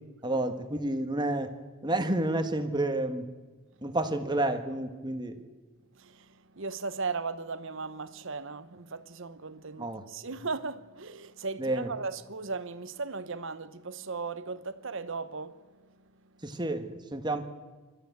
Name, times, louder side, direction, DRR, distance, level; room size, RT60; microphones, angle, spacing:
voice 1, 0.2-1.5 1.8-3.3 3.8-5.4 9.8-10.0 11.6-11.9 16.4-17.5, right 1 dB, 20° right, 1.4 m, -30 dB
voice 2, 5.9-16.0, right 4 dB, 60° right, 1.0 m, -37 dB
28.0 x 13.5 x 8.2 m
head